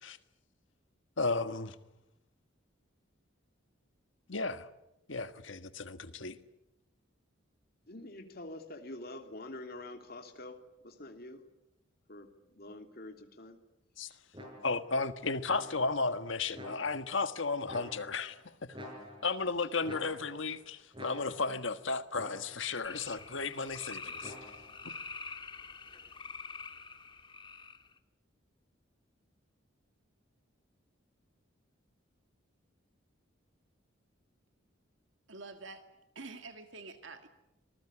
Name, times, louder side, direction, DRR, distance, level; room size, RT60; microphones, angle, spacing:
voice 1, 1.2-1.7 4.3-4.7 5.1-6.4 14.0-14.2 14.6-18.8 19.2-24.3 24.8-24.9, left 4 dB, 70° left, 10 dB, 1.6 m, -34 dB
voice 2, 7.9-10.6 10.8-11.4 12.1-13.6, left 2 dB, 50° left, 5 dB, 3.0 m, -46 dB
sound 1, 14.3-14.9 15.5-16.1 16.5-17.2 17.7-18.3 18.7-19.5 19.8-20.6 20.9-21.6 22.1-22.7 24.2-24.8, left 1 dB, 25° right, 7.2 m, -48 dB
sound 2, 22.8-28.0, left 4 dB, 25° left, 1.5 m, -46 dB
voice 3, 35.3-35.8 36.2-37.3, right 3 dB, 70° right, 6 dB, 2.0 m, -47 dB
26.0 x 20.5 x 10.0 m, 0.91 s
head